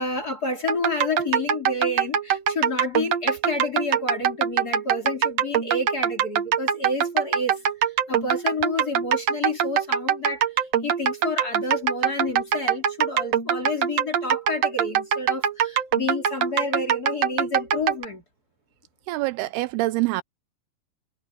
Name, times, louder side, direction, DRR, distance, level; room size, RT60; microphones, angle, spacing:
voice 1, 0.0-7.6 8.1-10.4 10.8-18.2, left 2 dB, 25° left, 3.1 m, -29 dB
sound 1, 0.7-18.0, right 9 dB, 55° right, 2.1 m, -23 dB
voice 2, 19.1-20.2, right 18 dB, 85° right, 2.5 m, -25 dB
omnidirectional pair, 4.6 m